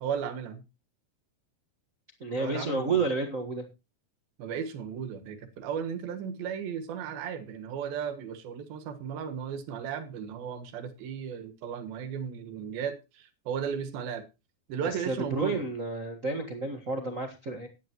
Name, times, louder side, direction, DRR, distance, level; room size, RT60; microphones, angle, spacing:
voice 1, 0.0-0.6 2.4-3.0 4.4-14.3 14.7-15.7, right 7 dB, 85° right, 3.4 m, -35 dB
voice 2, 2.2-3.6 14.8-17.7, right 3 dB, 60° right, 0.8 m, -31 dB
16.5 x 10.5 x 3.0 m
omnidirectional pair, 4.2 m